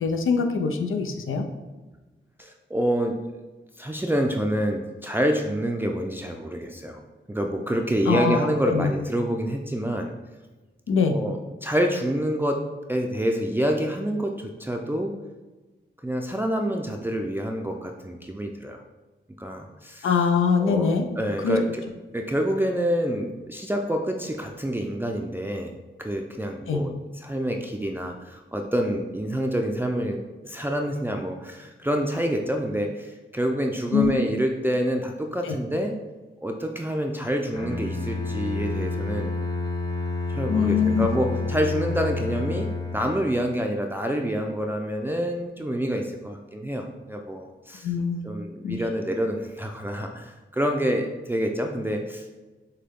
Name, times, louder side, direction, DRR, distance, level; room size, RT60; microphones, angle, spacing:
voice 1, 0.0-1.4 8.1-8.4 8.7-8.9 10.9-11.1 20.0-21.0 21.4-21.6 26.7-26.8 33.9-34.1 35.5-35.6 40.5-41.1 47.8-48.2 48.6-48.8, left 6 dB, 85° left, 5 dB, 0.5 m, -23 dB
voice 2, 2.4-3.2 3.8-7.0 7.3-10.1 11.0-12.6 12.9-15.1 16.0-18.8 19.4-20.1 20.6-21.8 22.1-35.9 36.4-39.3 40.3-47.9 48.2-52.2, equal, 10° right, 1 dB, 0.4 m, -27 dB
Bowed string instrument, 37.5-43.4, left 3 dB, 20° left, 0.8 m, -29 dB
6.6 x 2.2 x 3.5 m, 1.2 s
cardioid pair, 55°, 20 cm